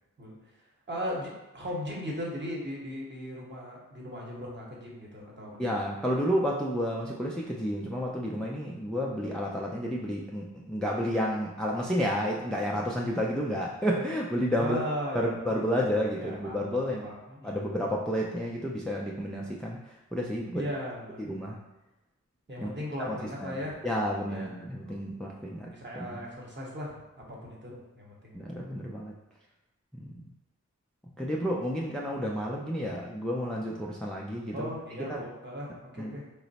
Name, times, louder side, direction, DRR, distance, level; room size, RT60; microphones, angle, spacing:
voice 1, 0.9-5.6 14.6-15.3 16.2-17.6 20.5-21.3 22.5-23.8 24.3-24.5 24.9-25.0 25.7-26.9 27.3-28.4 34.5-36.2, equal, 35° right, -3 dB, 0.9 m, -37 dB
voice 2, 5.6-14.8 15.1-17.1 17.4-19.8 20.1-20.6 21.2-21.6 22.6-22.7 23.1-26.2 28.3-29.1 29.9-30.2 31.2-34.7 35.1-35.2 36.0-36.1, equal, ahead, -2 dB, 0.3 m, -31 dB
3.0 x 2.0 x 4.0 m, 0.98 s
wide cardioid pair, 75°, 31 cm